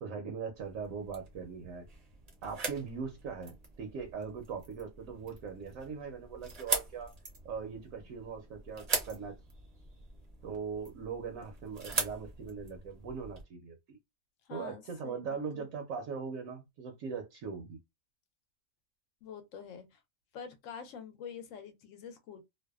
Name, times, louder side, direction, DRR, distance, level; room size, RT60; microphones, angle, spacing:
voice 1, 0.0-1.9 2.4-7.1 7.4-9.4 10.4-14.0 14.5-17.8, right 5 dB, 75° right, 1.0 m, -40 dB
sound 1, 0.5-13.4, right 4 dB, 40° right, 0.6 m, -41 dB
voice 2, 14.5-15.7 19.2-20.0 20.3-22.4, left 7 dB, 70° left, 0.9 m, -46 dB
2.6 x 2.1 x 2.2 m
omnidirectional pair, 1.4 m